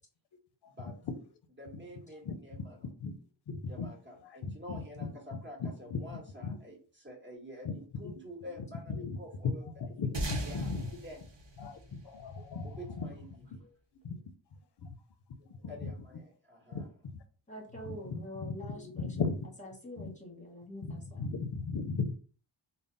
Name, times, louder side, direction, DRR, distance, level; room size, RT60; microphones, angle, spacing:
voice 1, 1.6-2.8 3.7-9.6 10.4-10.7 11.0-11.2 12.6-13.3 15.7-16.8, equal, 25° right, -2 dB, 1.4 m, -48 dB
voice 2, 2.2-2.7 3.0-3.2 3.5-3.9 4.2-6.6 7.6-7.7 8.0-8.2 8.5-9.2 9.4-10.9 11.6-13.1 13.4-13.6 14.0-14.2 14.8-14.9 15.4-15.9 16.7-16.8 17.1-17.2 17.8-19.4 20.0-20.1 20.8-22.1, left 4 dB, 60° left, 8 dB, 0.6 m, -37 dB
sound 1, 10.1-12.9, right 1 dB, 65° right, 1.0 m, -39 dB
voice 3, 17.5-19.1 19.6-21.3, equal, 15° left, 0 dB, 1.2 m, -46 dB
3.6 x 2.1 x 3.8 m, 0.40 s
wide cardioid pair, 130°, 47 cm